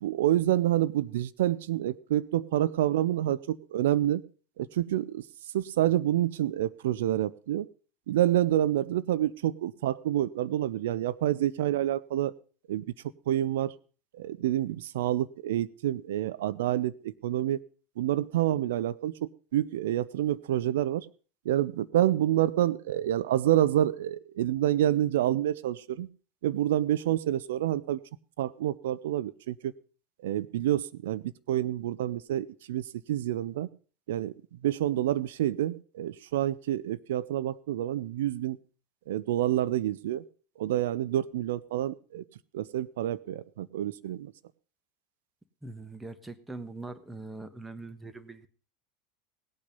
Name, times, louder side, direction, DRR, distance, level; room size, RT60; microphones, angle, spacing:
voice 1, 0.0-4.2 4.6-5.2 5.5-7.7 8.1-12.3 12.7-12.8 13.3-13.7 14.1-17.6 18.0-21.1 21.4-26.1 26.4-28.0 28.4-29.7 30.2-33.7 34.1-38.6 39.1-40.2 40.6-42.2 42.5-44.3, right 12 dB, 70° right, 17 dB, 0.6 m, -28 dB
voice 2, 45.6-48.5, right 2 dB, 10° right, 11 dB, 1.3 m, -42 dB
17.0 x 8.8 x 5.3 m, 0.38 s
hypercardioid pair, 80°, 0 cm